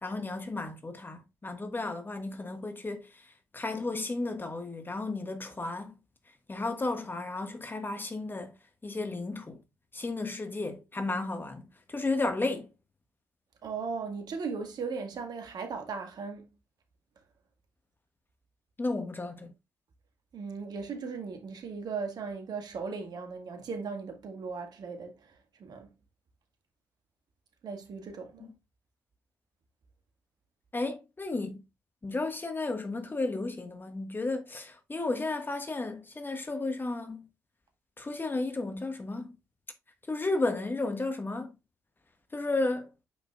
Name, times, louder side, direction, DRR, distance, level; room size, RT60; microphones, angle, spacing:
voice 1, 0.0-3.0 3.5-5.9 6.5-8.5 8.8-9.6 9.9-12.7 18.8-19.5 30.7-31.6 32.0-37.3 38.0-39.4 40.1-41.5 42.3-42.9, left 2 dB, 25° left, 1.5 m, -33 dB
voice 2, 13.6-16.5 20.3-25.1 25.6-25.9 27.6-28.5, right 5 dB, 55° right, 1.9 m, -37 dB
8.8 x 5.5 x 2.4 m
hypercardioid pair, 45°, 8 cm